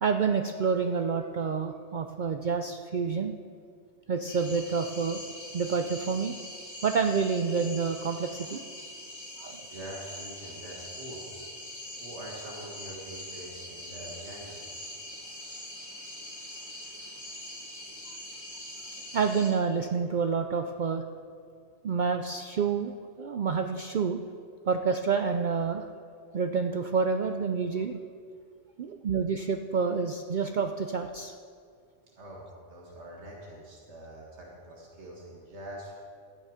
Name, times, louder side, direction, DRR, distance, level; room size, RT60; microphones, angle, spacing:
voice 1, 0.0-3.3 4.1-5.2 5.5-6.3 6.8-8.6 9.4-9.7 19.1-21.0 21.8-24.2 24.7-25.8 26.3-28.0 28.8-31.4, right 5 dB, 55° right, 6 dB, 0.6 m, -28 dB
sound 1, 4.3-19.5, left 1 dB, 25° left, 2.1 m, -43 dB
voice 2, 9.7-11.2 12.0-14.6 32.2-35.9, right 1 dB, 75° right, -3 dB, 2.1 m, -44 dB
13.0 x 9.2 x 4.9 m, 2.2 s
omnidirectional pair, 1.2 m